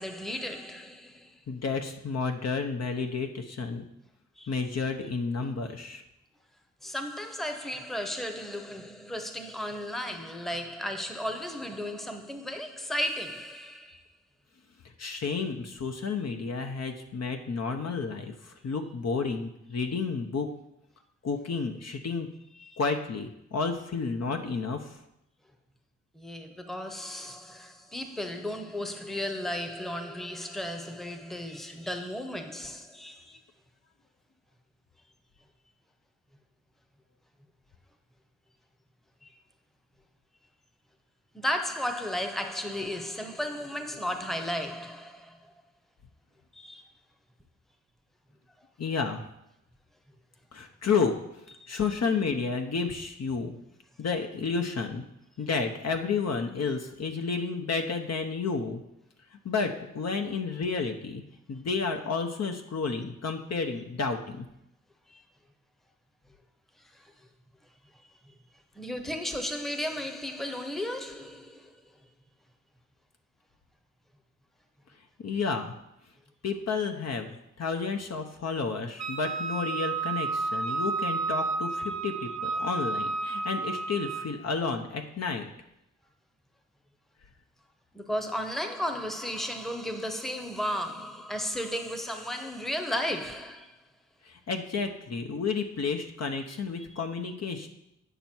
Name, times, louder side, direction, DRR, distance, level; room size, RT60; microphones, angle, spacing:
voice 1, 0.0-1.4 4.4-4.5 6.8-14.0 22.5-22.8 26.1-33.4 39.2-39.3 41.3-45.6 46.5-46.9 51.6-51.8 65.1-65.2 66.8-67.3 67.9-68.4 68.7-71.8 87.9-93.8 96.8-97.0, equal, ahead, 0.9 m, -35 dB
voice 2, 1.5-3.9 4.5-6.0 15.0-20.5 21.2-22.3 22.8-25.0 48.8-49.2 50.5-51.1 51.7-53.5 54.0-55.0 55.4-58.8 59.4-61.2 61.5-64.5 75.2-75.7 76.4-85.5 94.2-97.7, left 4 dB, 60° left, 1.0 m, -31 dB
Wind instrument woodwind instrument, 79.0-84.4, right 3 dB, 65° right, 0.8 m, -31 dB
9.1 x 5.5 x 4.5 m
cardioid pair, 65°, 30 cm